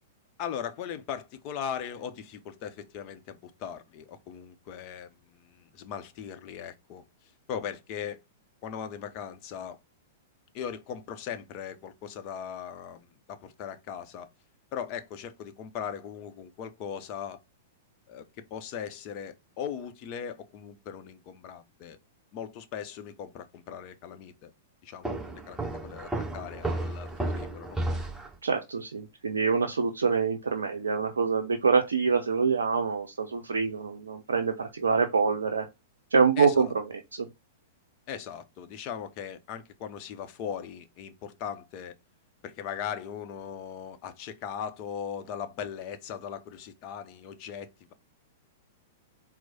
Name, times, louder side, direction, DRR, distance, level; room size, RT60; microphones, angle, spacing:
voice 1, 0.4-7.0 7.5-8.2 8.6-9.8 10.5-14.3 14.7-17.4 18.1-18.2 18.5-22.0 22.3-24.5 24.8-25.2 25.5-27.8 36.4-36.7 38.1-41.9 42.4-47.9, left 8 dB, 40° left, 0.7 m, -39 dB
Walk footsteps, 25.0-28.4, right 2 dB, 5° right, 1.8 m, -33 dB
voice 2, 28.4-35.7 36.1-36.7 37.1-37.3, right 5 dB, 75° right, 0.5 m, -25 dB
4.5 x 2.1 x 4.1 m
figure-of-eight pair, 100°, 0 cm